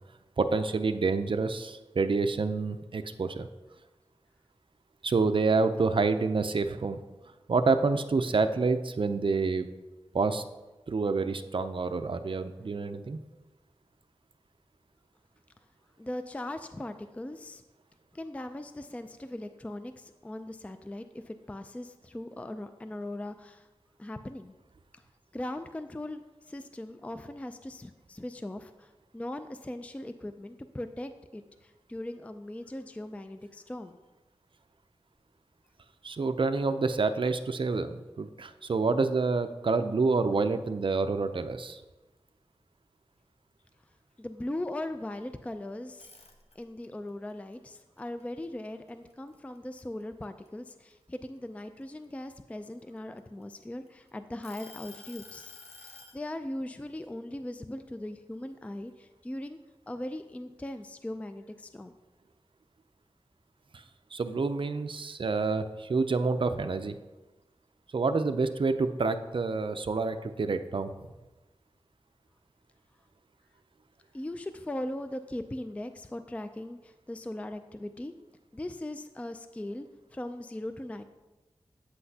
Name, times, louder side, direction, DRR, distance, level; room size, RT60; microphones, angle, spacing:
voice 1, 0.4-3.5 5.0-7.0 7.5-9.7 10.1-10.4 10.9-13.2 36.0-41.8 63.7-63.8 64.1-67.0 67.9-70.9, right 4 dB, 55° right, 9 dB, 0.5 m, -28 dB
voice 2, 16.0-17.6 18.1-23.7 24.0-24.5 24.9-25.0 25.3-26.2 26.5-34.0 44.2-46.1 46.6-55.5 55.8-59.6 59.9-61.9 74.1-78.1 78.5-81.0, left 1 dB, 15° left, 9 dB, 0.3 m, -39 dB
sound 1, 45.9-46.8 47.3-49.1 49.5-49.8 50.2-52.0 52.7-53.9 54.4-56.2, left 3 dB, 75° left, 0.8 m, -50 dB
8.4 x 7.8 x 2.8 m, 1.1 s
wide cardioid pair, 80°, 10 cm